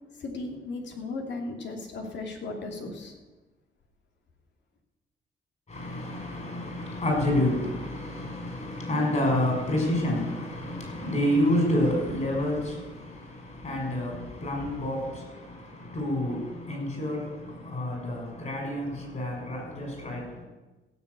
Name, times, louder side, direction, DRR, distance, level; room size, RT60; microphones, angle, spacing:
voice 1, 0.2-3.1, left 3 dB, 65° left, 2 dB, 2.8 m, -36 dB
voice 2, 5.7-20.4, left 1 dB, 35° left, 1 dB, 6.0 m, -29 dB
16.0 x 6.8 x 8.3 m, 1.1 s
cardioid pair, 90°, 20 cm